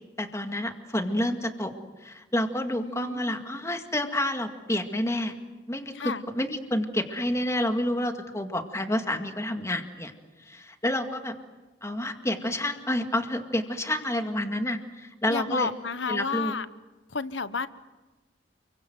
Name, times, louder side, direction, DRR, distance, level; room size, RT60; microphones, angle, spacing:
voice 1, 0.2-1.7 2.0-5.3 5.7-5.9 6.3-10.1 10.5-11.3 11.8-15.7 16.1-16.5, left 1 dB, 15° left, 6 dB, 2.1 m, -29 dB
voice 2, 2.7-3.4 5.9-6.2 15.3-16.7 17.1-17.7, left 4 dB, 75° left, 14 dB, 1.2 m, -31 dB
29.5 x 23.5 x 8.0 m, 1.2 s
head